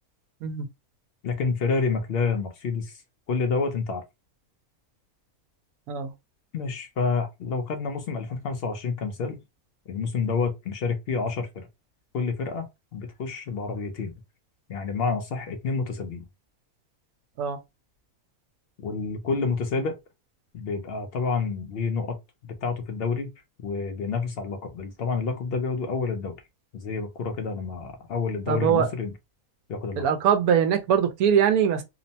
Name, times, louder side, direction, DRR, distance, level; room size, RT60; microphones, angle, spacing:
voice 1, 1.2-3.0 3.3-4.0 6.5-9.4 9.9-11.7 12.1-12.7 12.9-14.1 14.7-16.2 18.8-20.0 20.5-22.2 22.4-23.3 23.6-26.4 26.7-29.1 29.7-30.0, left 4 dB, 65° left, 0.6 m, -28 dB
voice 2, 28.5-28.9 30.0-31.8, right 8 dB, 80° right, 1.0 m, -22 dB
2.9 x 2.0 x 2.6 m
omnidirectional pair, 1.5 m